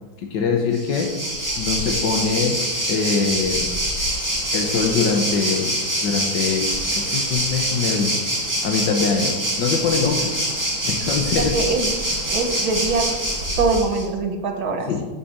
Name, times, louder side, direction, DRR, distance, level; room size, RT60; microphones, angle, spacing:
voice 1, 0.2-1.1 1.6-2.6 2.9-3.7 4.5-8.2 8.6-10.3 10.8-11.6 14.9-15.0, left 5 dB, 65° left, 1 dB, 1.5 m, -23 dB
Waves surf, 0.7-14.0, right 1 dB, 10° right, 2.1 m, -25 dB
voice 2, 11.4-12.0 12.3-13.1 13.6-14.9, right 4 dB, 70° right, 5 dB, 2.0 m, -23 dB
11.5 x 5.8 x 7.4 m, 1.3 s
omnidirectional pair, 2.2 m